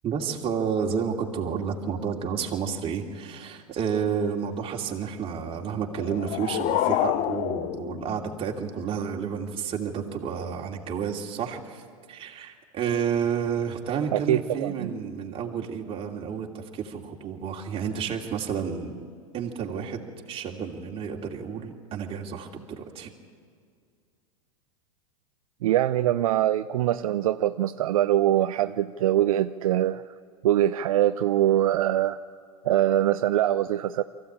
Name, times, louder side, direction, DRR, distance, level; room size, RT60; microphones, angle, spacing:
voice 1, 0.0-11.8 12.1-19.1 19.3-23.1, right 7 dB, 30° right, 0 dB, 2.8 m, -30 dB
sound 1, 5.9-8.9, left 13 dB, 45° left, 0.7 m, -28 dB
voice 2, 14.1-14.9 25.6-30.0 30.4-32.2 32.6-34.0, right 12 dB, 75° right, 10 dB, 0.6 m, -23 dB
23.5 x 15.5 x 8.8 m, 2.1 s
hypercardioid pair, 105°, 18 cm